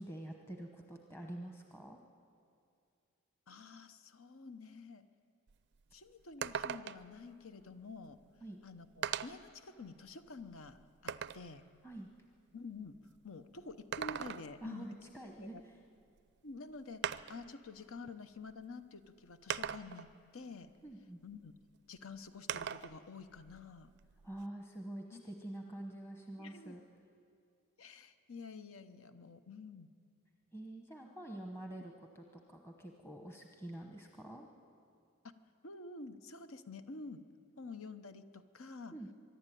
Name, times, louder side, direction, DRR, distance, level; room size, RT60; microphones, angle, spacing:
voice 1, 0.0-2.0 8.4-8.6 11.8-12.1 14.6-15.8 20.8-21.2 24.2-26.8 30.5-34.5 38.9-39.1, right 1 dB, 10° left, 2 dB, 1.0 m, -47 dB
voice 2, 3.5-5.1 5.9-8.2 8.6-11.6 12.5-13.0 13.2-14.9 15.4-15.6 16.4-20.7 21.2-21.5 21.9-23.9 25.1-25.2 26.4-26.8 27.8-29.9 35.6-37.2 37.6-38.9, left 4 dB, 70° left, 11 dB, 0.9 m, -49 dB
sound 1, 5.5-5.6 5.9-6.0 6.4-7.2 8.2-8.3 9.0-9.5 10.1-11.5 13.7-14.7 16.2-16.3 17.0-17.5 18.5-18.6 19.5-20.1 22.5-23.0 23.3-24.4, right 8 dB, 50° right, 0.4 m, -40 dB
24.5 x 11.5 x 9.2 m, 2.4 s
head